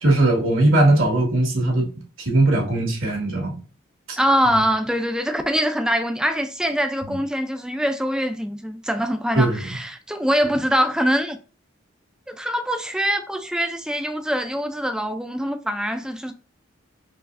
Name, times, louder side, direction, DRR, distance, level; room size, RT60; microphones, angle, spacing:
voice 1, 0.0-1.9 2.2-3.6 4.1-4.2 9.3-9.6, right 2 dB, 80° right, 1.8 m, -19 dB
voice 2, 4.2-11.4 12.3-16.3, equal, 5° right, 0.4 m, -23 dB
4.7 x 3.1 x 2.5 m
head